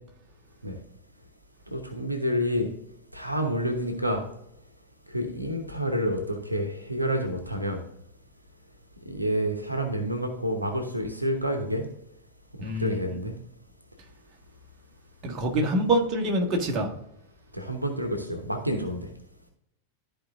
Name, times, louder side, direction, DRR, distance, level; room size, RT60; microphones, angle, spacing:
voice 1, 1.7-2.7 3.1-4.2 5.1-7.8 9.1-11.9 12.8-13.4 17.5-19.1, equal, 85° right, 1.0 m, -28 dB
voice 2, 12.6-13.2 15.2-16.9, right 1 dB, 35° right, 1.6 m, -26 dB
13.0 x 4.7 x 2.6 m
figure-of-eight pair, 90°, 0 cm